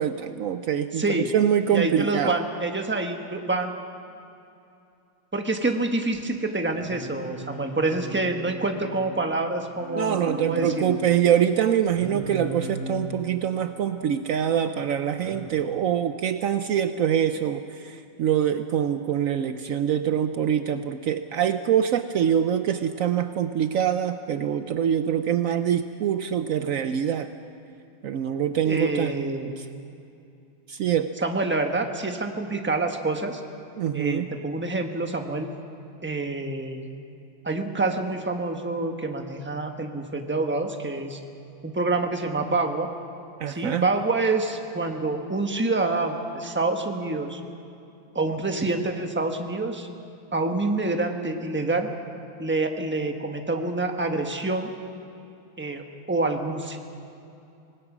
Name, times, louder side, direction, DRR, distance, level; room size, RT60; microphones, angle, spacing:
voice 1, 0.0-2.4 9.9-27.3 28.0-29.7 30.7-31.1 33.8-34.3 43.4-43.9, right 9 dB, 90° right, 9 dB, 0.7 m, -24 dB
voice 2, 1.0-1.3 1.7-3.7 5.3-10.8 28.6-29.5 31.2-33.4 33.9-35.5 36.0-36.8 37.4-41.2 41.6-42.9 43.5-47.4 48.1-49.9 50.3-51.9 52.4-54.7 55.6-56.8, right 2 dB, 10° right, 4 dB, 0.9 m, -27 dB
Singing, 6.7-9.2 9.8-11.0 11.9-13.2 15.1-15.5, left 1 dB, 65° left, 4.2 m, -37 dB
25.5 x 19.5 x 6.1 m, 2.6 s
omnidirectional pair, 2.2 m